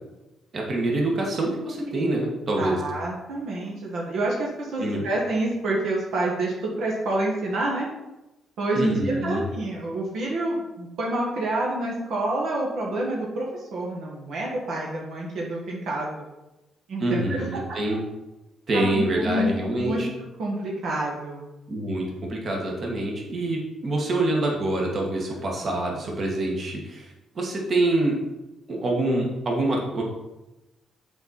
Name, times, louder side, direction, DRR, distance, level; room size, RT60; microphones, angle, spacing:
voice 1, 0.5-2.8 4.8-5.0 8.7-9.4 17.0-18.0 18.7-20.1 21.7-27.1 27.3-28.2 28.7-30.0, right 2 dB, 50° right, -1 dB, 1.7 m, -26 dB
voice 2, 2.6-7.9 8.6-16.2 16.9-17.6 18.7-19.5 19.8-20.0 20.4-21.5 25.5-25.6, right 1 dB, 75° right, -2 dB, 1.5 m, -28 dB
7.8 x 4.2 x 4.3 m, 1.0 s
cardioid pair, 90°, 0 cm